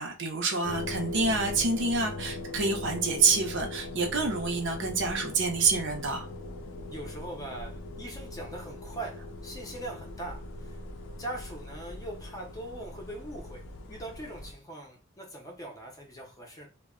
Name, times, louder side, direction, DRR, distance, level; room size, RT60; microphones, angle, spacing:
voice 1, 0.0-6.3, right 4 dB, 60° right, 0.6 m, -27 dB
sound 1, 0.6-14.5, left 2 dB, 65° left, 0.4 m, -40 dB
voice 2, 6.9-10.8 11.2-16.7, right 1 dB, 15° left, 0.6 m, -41 dB
2.1 x 2.1 x 3.6 m
head